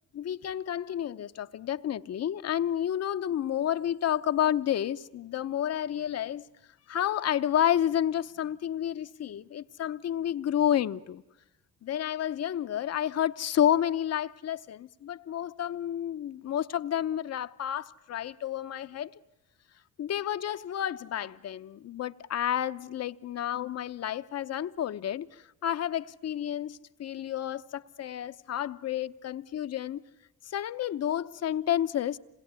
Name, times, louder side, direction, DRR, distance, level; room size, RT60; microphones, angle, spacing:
voice 1, 0.1-6.4 6.9-11.2 11.8-19.1 20.0-30.0 30.4-32.2, left 10 dB, 55° left, 0.8 m, -30 dB
27.0 x 20.0 x 9.6 m
cardioid pair, 90°, 30 cm